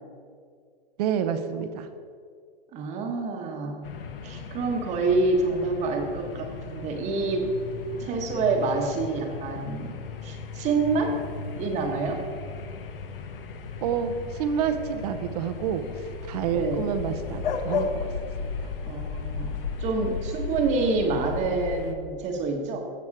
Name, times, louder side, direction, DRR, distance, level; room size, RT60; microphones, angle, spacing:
voice 1, 1.0-1.9 13.8-14.1 14.4-15.8 16.3-18.1, right 8 dB, 45° right, 9 dB, 0.9 m, -28 dB
voice 2, 2.7-3.8 4.2-7.5 8.0-10.0 10.2-11.2 11.5-12.2 16.5-16.8 18.9-22.8, right 3 dB, 25° right, 3 dB, 1.3 m, -27 dB
sound 1, 3.8-21.9, left 5 dB, 70° left, 1.2 m, -35 dB
16.5 x 6.3 x 4.8 m, 2.1 s
hypercardioid pair, 145°, 29 cm